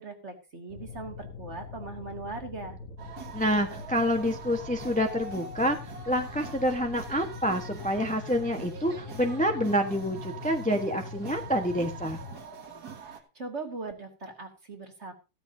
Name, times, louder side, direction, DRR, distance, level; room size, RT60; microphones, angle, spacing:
voice 1, 0.0-2.8 13.0-15.1, right 3 dB, 30° right, 4 dB, 2.2 m, -40 dB
sound 1, 0.7-12.4, left 4 dB, 45° left, 1.6 m, -43 dB
sound 2, 3.0-13.2, right 5 dB, 50° right, 2.1 m, -44 dB
voice 2, 3.3-12.2, equal, 5° left, 4 dB, 0.8 m, -28 dB
15.0 x 13.0 x 2.8 m, 0.29 s
omnidirectional pair, 2.3 m